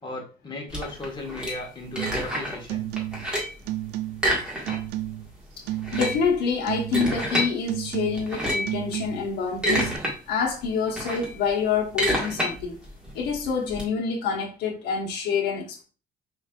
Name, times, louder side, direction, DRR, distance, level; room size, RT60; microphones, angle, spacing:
voice 1, 0.0-2.9, left 2 dB, 25° left, 1.5 m, -36 dB
sound 1, 0.7-2.6 3.0-3.6 4.1-5.0 5.3-5.4 5.7-7.5 8.1-8.8 9.3-10.1 10.5-13.8, equal, 5° right, 1.7 m, -28 dB
sound 2, 2.0-2.3 2.6-3.3 3.6-4.3 4.7-5.3 5.7-6.4 6.7-7.3 7.7-8.3 8.6-9.3 9.7-10.0, right 14 dB, 85° right, 0.4 m, -32 dB
voice 2, 5.9-9.9 10.3-12.8 13.1-15.8, left 5 dB, 80° left, 1.1 m, -27 dB
5.3 x 3.1 x 2.4 m
cardioid pair, 110°, 17 cm